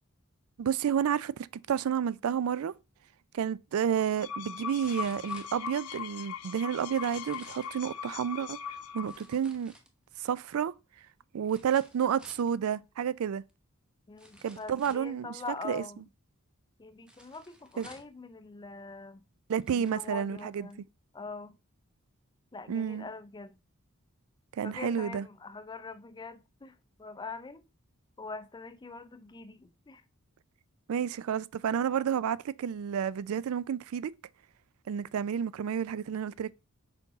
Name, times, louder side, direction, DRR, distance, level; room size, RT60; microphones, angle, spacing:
voice 1, 0.6-2.7 3.3-8.6 8.9-9.7 10.2-10.7 11.3-13.4 14.4-15.3 15.6-15.8 17.8-17.9 19.5-20.7 22.7-23.1 24.6-25.2 30.9-34.1 34.9-36.5, right 8 dB, 70° right, 0.3 m, -30 dB
sound 1, 4.0-9.4, left 7 dB, 80° left, 0.6 m, -40 dB
sound 2, 4.8-6.1 6.8-7.8 9.0-10.2 11.4-12.5 13.5-13.6 14.2-15.1 17.1-18.2 19.0-19.1 19.5-20.1 20.7-20.8, equal, 5° right, 0.8 m, -55 dB
voice 2, 14.1-16.1 16.8-19.3 19.7-20.8 21.1-21.6 22.5-23.6 24.6-27.6 28.2-30.0, left 3 dB, 20° left, 0.4 m, -43 dB
5.2 x 4.5 x 4.0 m
head